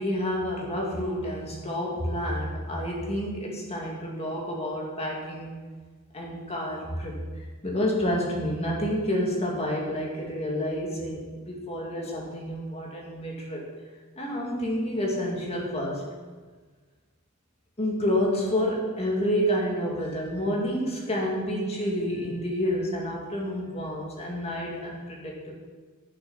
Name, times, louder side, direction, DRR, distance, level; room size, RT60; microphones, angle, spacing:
voice 1, 0.0-5.6 6.1-13.7 14.2-16.0 17.8-25.5, equal, 30° left, -2 dB, 2.1 m, -29 dB
10.5 x 6.2 x 5.5 m, 1.4 s
head